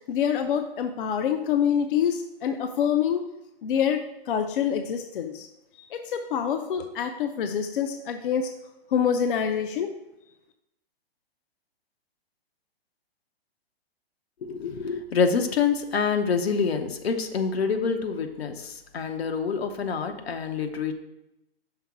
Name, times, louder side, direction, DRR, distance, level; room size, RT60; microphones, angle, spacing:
voice 1, 0.1-3.3 3.6-5.5 5.9-8.5 8.9-9.9, left 8 dB, 60° left, 6 dB, 0.6 m, -26 dB
voice 2, 14.4-20.9, left 5 dB, 85° left, 6 dB, 0.9 m, -26 dB
5.8 x 3.7 x 5.7 m, 0.88 s
hypercardioid pair, 150°, 30 cm